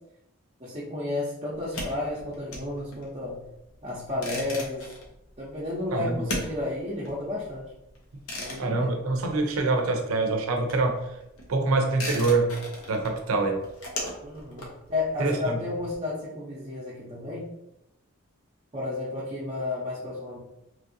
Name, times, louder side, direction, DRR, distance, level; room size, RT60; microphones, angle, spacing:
voice 1, 0.6-3.5 3.8-4.9 5.4-7.7 8.4-9.0 14.2-17.4 18.7-20.4, left 2 dB, 30° right, -7 dB, 0.6 m, -32 dB
sound 1, 1.5-9.9 10.2-15.9, left 1 dB, 80° left, 0.8 m, -38 dB
voice 2, 5.9-6.2 8.6-11.0 11.5-12.5 12.9-13.6 15.2-15.6, right 3 dB, 90° right, 3 dB, 0.5 m, -25 dB
3.1 x 2.6 x 2.6 m, 0.87 s
head